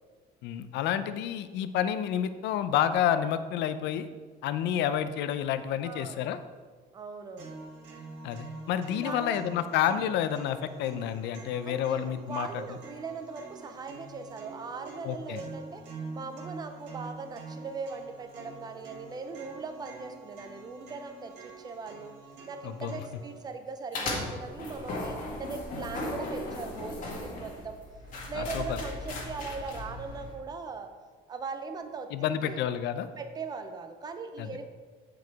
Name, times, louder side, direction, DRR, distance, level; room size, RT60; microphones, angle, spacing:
voice 1, 0.4-4.1 4.4-6.4 8.2-12.6 15.0-15.4 22.6-23.0 28.3-28.6 32.1-33.1 34.4-34.5, left 9 dB, 70° left, 12 dB, 0.5 m, -29 dB
voice 2, 5.8-6.2 6.9-7.6 9.0-9.5 11.6-22.1 22.5-27.8 28.3-30.9 31.3-32.6 33.2-34.6, right 4 dB, 20° right, 7 dB, 0.5 m, -40 dB
sound 1, 7.4-23.4, right 3 dB, 75° right, 1.8 m, -46 dB
sound 2, 23.9-30.3, left 2 dB, 45° left, 1.8 m, -37 dB
8.2 x 4.8 x 4.7 m, 1.5 s
cardioid pair, 175°, 18 cm